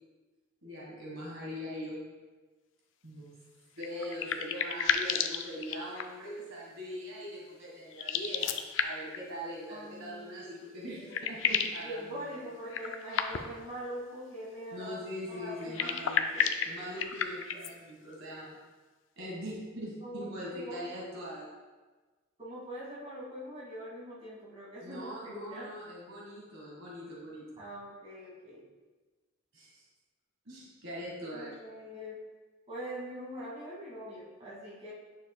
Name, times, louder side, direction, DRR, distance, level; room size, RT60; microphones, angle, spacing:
voice 1, 0.6-2.1 3.0-3.3 3.8-12.4 14.7-18.6 19.2-21.5 24.8-27.4 29.5-29.8 30.4-31.5, equal, 65° right, -5 dB, 1.6 m, -42 dB
sound 1, 3.8-6.3 7.9-9.2 10.5-10.6 10.9-11.8 12.7-13.7 15.6-17.7, left 7 dB, 60° left, 0.5 m, -32 dB
voice 2, 9.7-10.3 10.8-11.2 11.8-15.0 15.3-16.0 20.0-20.9 22.4-25.7 27.6-28.7 31.3-32.2 32.7-34.9, equal, 25° right, -7 dB, 2.2 m, -43 dB
10.0 x 6.6 x 2.3 m, 1.3 s
head